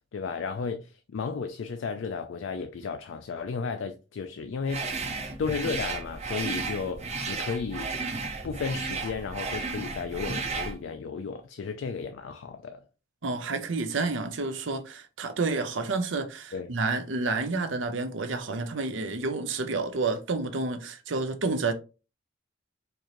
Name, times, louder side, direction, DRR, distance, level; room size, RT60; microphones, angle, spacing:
voice 1, 0.1-4.9 5.4-8.0 8.4-12.8 16.5-16.7, left 5 dB, 80° left, 0.4 m, -33 dB
sound 1, 4.7-10.8, right 4 dB, 35° right, 0.6 m, -33 dB
voice 2, 13.2-21.7, right 3 dB, 85° right, 0.7 m, -29 dB
4.6 x 2.6 x 2.9 m
head